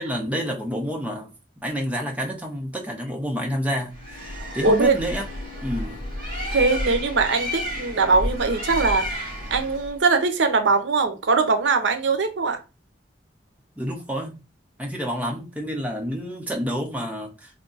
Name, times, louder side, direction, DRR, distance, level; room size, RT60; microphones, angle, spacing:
voice 1, 0.0-1.3 1.6-4.2 4.5-5.2 5.6-6.0 13.8-14.4 14.8-17.6, equal, 10° right, 0.7 m, -29 dB
Bird, 3.9-10.0, equal, 50° right, 2.3 m, -31 dB
voice 2, 4.6-5.0 6.5-12.6, right 4 dB, 85° right, 0.7 m, -21 dB
3.7 x 2.6 x 3.8 m
head